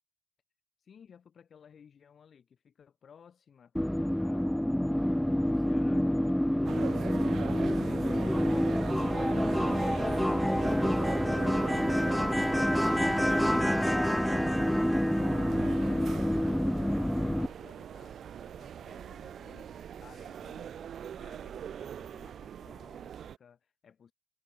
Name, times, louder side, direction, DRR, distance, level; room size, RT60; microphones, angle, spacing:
voice 1, 0.8-3.8 4.1-6.9 7.3-8.6 8.9-20.9 21.2-24.1, left 7 dB, 50° left, 7.4 m, -58 dB
sound 1, 3.8-17.5, equal, 5° left, 0.4 m, -27 dB
sound 2, 6.6-23.4, right 9 dB, 60° right, 1.4 m, -41 dB
cardioid pair, 90°, 0 cm